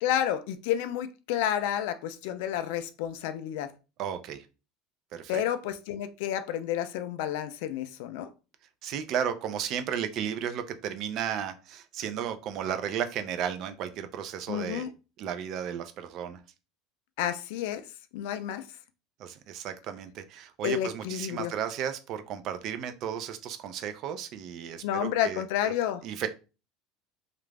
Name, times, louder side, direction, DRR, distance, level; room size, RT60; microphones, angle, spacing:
voice 1, 0.0-3.7 5.3-8.3 14.5-14.9 17.2-17.8 18.1-18.6 20.6-21.5 24.8-26.0, left 10 dB, 75° left, 0.3 m, -30 dB
voice 2, 4.0-4.5 5.1-5.4 8.8-14.9 15.2-16.4 19.2-25.7 26.0-26.3, right 9 dB, 45° right, 0.4 m, -34 dB
2.4 x 2.0 x 3.2 m
cardioid pair, 145°, 0 cm